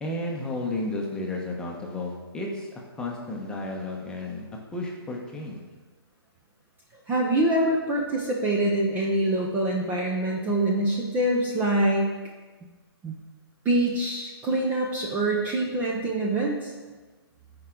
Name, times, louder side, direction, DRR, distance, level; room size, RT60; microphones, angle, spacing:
voice 1, 0.0-2.7 3.0-5.6, left 2 dB, 5° left, -1 dB, 1.0 m, -32 dB
voice 2, 7.1-12.1 13.0-13.2 13.6-16.7, right 1 dB, 15° right, -2 dB, 0.7 m, -25 dB
13.5 x 4.8 x 3.8 m, 1.3 s
hypercardioid pair, 150°, 13 cm